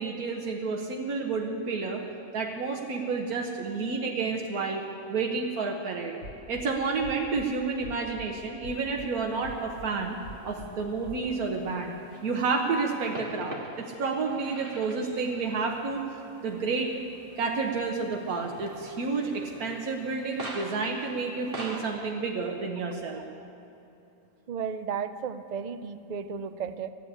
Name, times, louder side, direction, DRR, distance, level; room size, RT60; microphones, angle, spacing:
voice 1, 0.0-2.0 2.3-6.1 6.5-10.2 10.4-16.1 16.4-17.0 17.4-23.2, right 4 dB, 90° right, 1 dB, 1.5 m, -30 dB
sound 1, 6.2-6.6 7.0-7.4 7.8-8.3 8.6-9.1 9.4-9.9 10.2-10.7 11.0-11.2, equal, 85° left, 1.7 m, -43 dB
sound 2, 8.6-21.8, right 1 dB, 40° right, 1.8 m, -46 dB
voice 2, 24.5-26.9, right 6 dB, 70° right, 11 dB, 0.4 m, -34 dB
15.0 x 8.1 x 9.9 m, 2.7 s
omnidirectional pair, 1.5 m